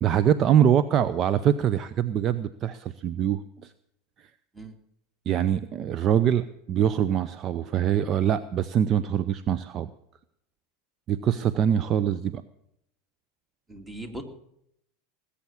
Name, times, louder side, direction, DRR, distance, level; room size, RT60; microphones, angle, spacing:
voice 1, 0.0-3.7 5.3-9.9 11.1-12.4, right 9 dB, 40° right, 14 dB, 0.6 m, -24 dB
voice 2, 13.7-14.2, right 1 dB, 15° right, 6 dB, 2.5 m, -39 dB
19.5 x 8.5 x 7.2 m, 0.76 s
hypercardioid pair, 85°, 0 cm